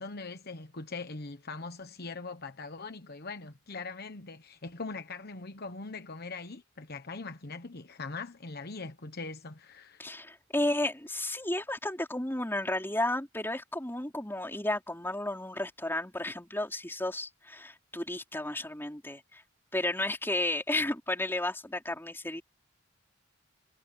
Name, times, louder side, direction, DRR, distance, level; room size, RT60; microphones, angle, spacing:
voice 1, 0.0-10.0, left 3 dB, 50° left, 1.2 m, -41 dB
voice 2, 10.0-19.4 19.7-22.4, left 1 dB, 10° left, 4.0 m, -33 dB
head